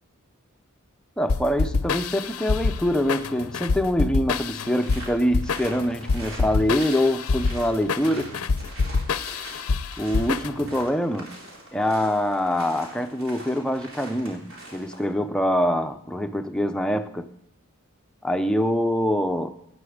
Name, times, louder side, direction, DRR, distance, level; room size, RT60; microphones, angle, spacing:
voice 1, 1.2-8.4 10.0-11.4 11.7-17.3 18.2-19.5, equal, 5° left, 0.5 m, -24 dB
sound 1, 1.3-10.8, left 4 dB, 90° left, 0.6 m, -26 dB
sound 2, 4.8-15.1, right 1 dB, 70° right, 3.7 m, -43 dB
17.0 x 9.6 x 4.9 m
head